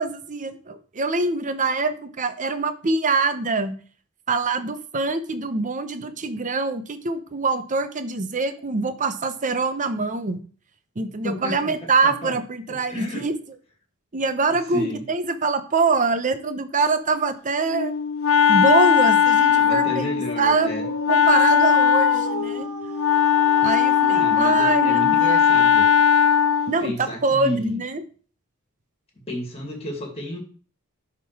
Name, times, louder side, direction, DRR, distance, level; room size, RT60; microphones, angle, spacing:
voice 1, 0.0-3.7 4.3-10.4 11.0-13.3 14.1-17.9 18.5-22.7 23.6-25.4 26.7-28.0, right 3 dB, 35° right, 10 dB, 0.8 m, -24 dB
voice 2, 11.2-11.7 12.0-12.3 12.9-13.3 14.7-15.0 19.5-20.8 24.1-25.9 26.8-27.8 29.3-30.4, left 1 dB, 30° left, 2 dB, 2.4 m, -32 dB
Wind instrument woodwind instrument, 17.7-26.8, left 8 dB, 65° left, 0.7 m, -19 dB
Dog, 20.4-26.1, right 2 dB, 85° right, 1.0 m, -36 dB
10.5 x 3.7 x 4.7 m, 0.41 s
head